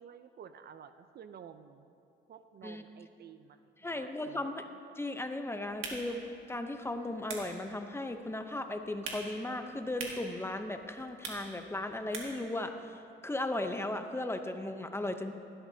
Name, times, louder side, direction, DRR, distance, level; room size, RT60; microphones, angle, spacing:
voice 1, 0.0-1.9 2.3-4.5, right 8 dB, 55° right, 10 dB, 0.5 m, -52 dB
voice 2, 3.8-4.7 5.0-6.2 6.5-15.3, left 2 dB, 10° left, 7 dB, 0.8 m, -36 dB
sound 1, 5.6-12.5, right 4 dB, 85° right, 1.8 m, -46 dB
16.5 x 12.0 x 2.8 m, 2.7 s
cardioid pair, 90°, 20 cm